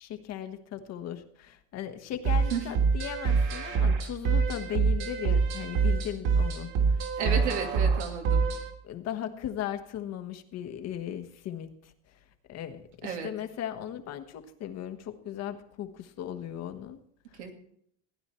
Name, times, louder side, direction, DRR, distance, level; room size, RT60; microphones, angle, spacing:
voice 1, 0.0-7.6 8.8-17.0 17.3-17.5, left 10 dB, 50° left, 8 dB, 1.5 m, -38 dB
sound 1, 2.2-8.7, right 5 dB, 70° right, 3.1 m, -25 dB
voice 2, 7.2-8.5 13.0-13.3 17.4-17.5, right 7 dB, 90° right, 3 dB, 2.5 m, -32 dB
16.0 x 9.6 x 4.4 m, 0.68 s
supercardioid pair, 105°, 33 cm